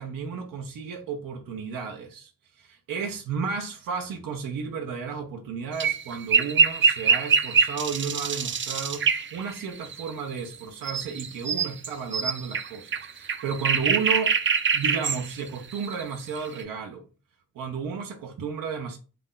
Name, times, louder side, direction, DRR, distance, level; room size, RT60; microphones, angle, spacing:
voice 1, 0.0-2.3 2.6-14.3 14.7-17.0 17.5-19.0, right 5 dB, 85° right, 0.6 m, -33 dB
sound 1, 5.8-10.6 10.8-16.6, right 6 dB, 40° right, 0.4 m, -24 dB
2.4 x 2.1 x 3.6 m
cardioid pair, 75°, 33 cm